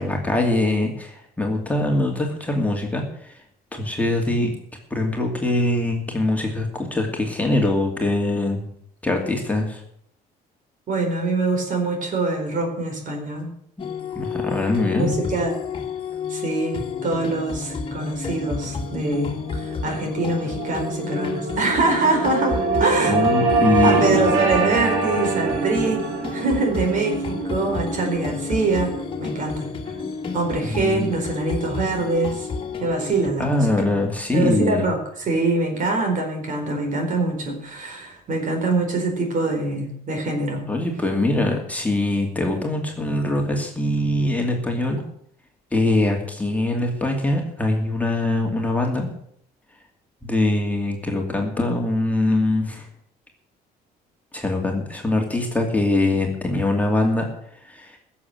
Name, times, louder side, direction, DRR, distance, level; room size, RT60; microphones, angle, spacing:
voice 1, 0.0-3.3 3.7-4.5 4.9-8.7 9.0-9.8 14.1-15.1 23.1-24.3 30.6-31.1 33.4-34.9 40.7-45.0 45.7-49.1 50.2-52.8 54.3-57.3 57.6-58.0, left 2 dB, 10° left, 1 dB, 2.6 m, -23 dB
voice 2, 10.9-13.5 14.8-15.6 16.3-23.1 23.5-26.1 26.3-28.9 29.2-29.7 30.3-32.5 32.8-33.9 34.3-40.6, right 3 dB, 50° right, 4 dB, 4.4 m, -24 dB
sound 1, 13.8-33.3, left 5 dB, 30° left, 2.0 m, -31 dB
sound 2, 18.2-30.8, right 3 dB, 85° right, 3.1 m, -25 dB
15.5 x 7.3 x 7.8 m, 0.68 s
cardioid pair, 110°, 17 cm